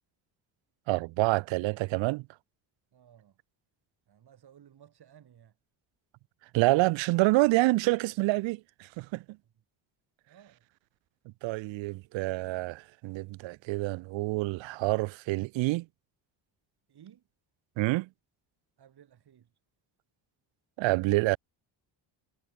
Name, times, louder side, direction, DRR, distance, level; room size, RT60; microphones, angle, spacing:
voice 1, 0.9-2.3 6.5-9.2 11.4-15.9 17.8-18.1 20.8-21.4, right 21 dB, 80° right, 0.6 m, -27 dB
voice 2, 2.9-3.4 4.1-5.6 9.4-9.5 10.3-10.6 16.9-17.3 18.8-19.5, right 9 dB, 55° right, 7.8 m, -57 dB
cardioid pair, 105°, 46 cm